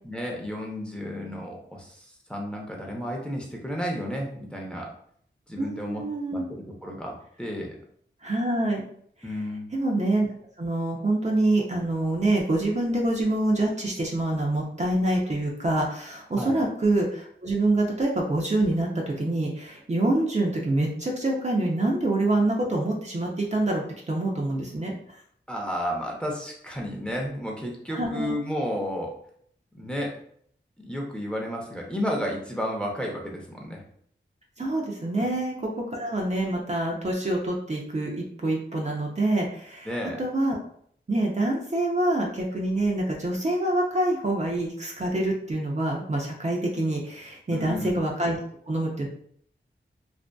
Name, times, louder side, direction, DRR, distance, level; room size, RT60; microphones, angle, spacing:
voice 1, 0.0-4.9 5.5-6.0 6.3-6.4 6.8-7.1 7.4-7.8 9.2-9.7 16.4-16.6 25.5-29.1 29.7-30.1 30.8-33.8 39.8-40.2 47.5-48.0, equal, 5° left, -1 dB, 0.7 m, -32 dB
voice 2, 5.6-6.4 8.2-8.8 9.7-10.3 10.6-25.2 27.9-28.3 34.6-35.5 35.9-39.9 40.2-40.6 41.1-48.4 48.7-49.1, right 1 dB, 35° right, -2 dB, 0.6 m, -26 dB
2.5 x 2.3 x 2.2 m, 0.63 s
cardioid pair, 45°, 20 cm